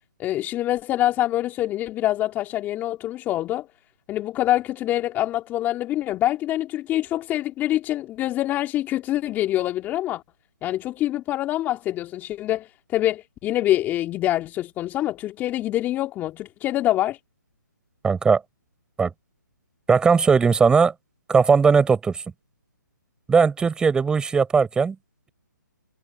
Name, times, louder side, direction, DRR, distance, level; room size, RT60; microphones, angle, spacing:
voice 1, 0.2-3.7 4.1-10.2 10.6-17.2, left 14 dB, 15° left, 2.8 m, -25 dB
voice 2, 18.0-18.4 19.0-19.1 19.9-20.9 21.3-22.2 23.3-25.0, right 5 dB, 10° right, 4.6 m, -18 dB
figure-of-eight pair, 140°, 11 cm